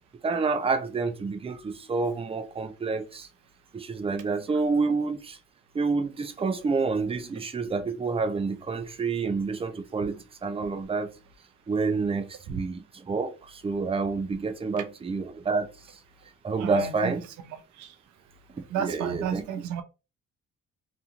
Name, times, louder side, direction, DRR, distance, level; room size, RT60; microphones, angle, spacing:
voice 1, 0.2-3.3 3.7-5.4 5.7-11.1 11.7-15.7 16.4-17.2 18.7-19.4, right 4 dB, 20° right, 0.4 m, -28 dB
voice 2, 16.6-17.1 17.8-17.9 18.7-19.8, right 8 dB, 75° right, 0.5 m, -32 dB
2.9 x 2.5 x 2.4 m
cardioid pair, 90°, 30 cm